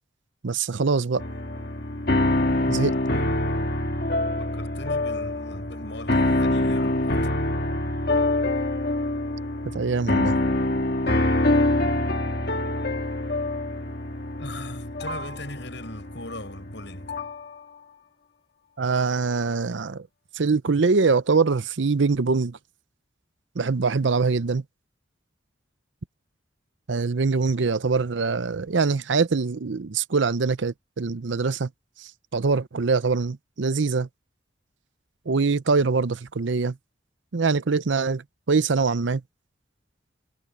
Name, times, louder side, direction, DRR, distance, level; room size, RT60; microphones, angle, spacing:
voice 1, 0.4-1.2 2.7-2.9 9.7-10.4 18.8-20.1 20.3-22.6 23.6-24.6 26.9-31.7 32.3-34.1 35.3-36.8 37.3-39.2, right 4 dB, 80° right, 0.7 m, -23 dB
sound 1, 1.2-17.4, left 1 dB, 55° left, 1.8 m, -25 dB
voice 2, 2.6-3.6 4.4-7.3 14.4-17.2, left 1 dB, 70° left, 7.2 m, -39 dB
head